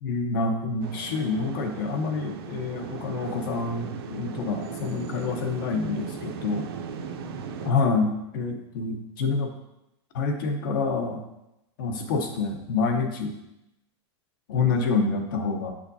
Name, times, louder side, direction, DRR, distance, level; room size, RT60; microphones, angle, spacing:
voice 1, 0.0-6.7 7.6-9.5 10.1-11.2 11.8-13.4 14.5-15.7, left 4 dB, 50° left, 5 dB, 0.8 m, -27 dB
sound 1, 0.8-7.7, right 6 dB, 60° right, 0.5 m, -38 dB
7.1 x 5.0 x 2.7 m, 0.89 s
supercardioid pair, 175°, 15 cm